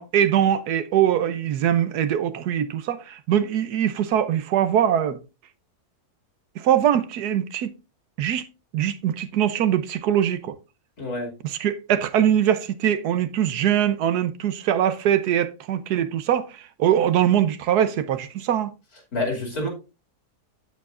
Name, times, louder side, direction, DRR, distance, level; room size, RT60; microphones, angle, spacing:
voice 1, 0.0-5.2 6.6-7.7 8.2-8.5 8.7-10.6 11.6-18.7, right 10 dB, 85° right, 1.3 m, -22 dB
voice 2, 11.0-11.3 19.1-19.7, left 2 dB, 70° left, 3.1 m, -27 dB
14.0 x 4.8 x 2.5 m
omnidirectional pair, 1.7 m